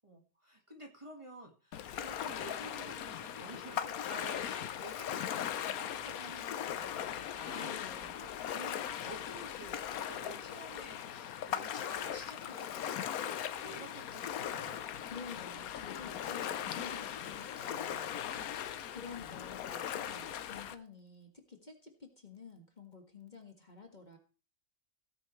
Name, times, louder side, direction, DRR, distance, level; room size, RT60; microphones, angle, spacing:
voice 1, 0.0-7.7 8.2-14.8 19.1-19.3, right 1 dB, 20° right, 1 dB, 1.8 m, -51 dB
Ocean, 1.7-20.7, left 10 dB, 90° left, 1.2 m, -39 dB
voice 2, 7.5-8.2 15.1-18.2 18.9-24.2, left 5 dB, 30° left, 3 dB, 1.9 m, -50 dB
16.5 x 9.1 x 3.2 m, 0.35 s
omnidirectional pair, 1.5 m